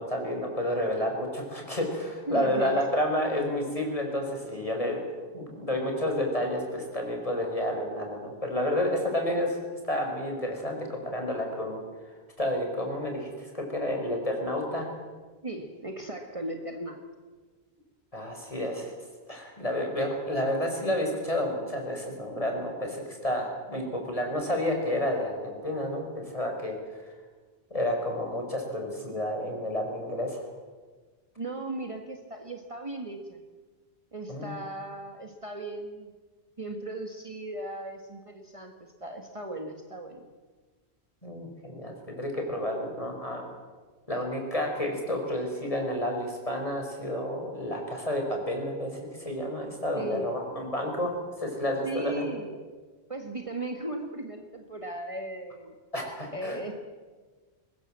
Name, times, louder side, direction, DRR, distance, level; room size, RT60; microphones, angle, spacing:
voice 1, 0.0-9.6 9.8-14.9 18.1-18.9 19.3-27.1 27.7-30.5 34.3-34.5 41.2-43.5 44.1-51.1 51.4-52.3 55.9-56.6, left 1 dB, 30° left, 1 dB, 5.4 m, -30 dB
voice 2, 2.3-2.9 15.4-17.0 31.4-33.4 34.1-36.1 36.6-40.3 49.9-50.3 51.8-52.5 53.1-55.8 56.3-56.7, right 2 dB, 30° right, 3 dB, 1.7 m, -37 dB
22.5 x 20.5 x 7.6 m, 1.4 s
omnidirectional pair, 1.1 m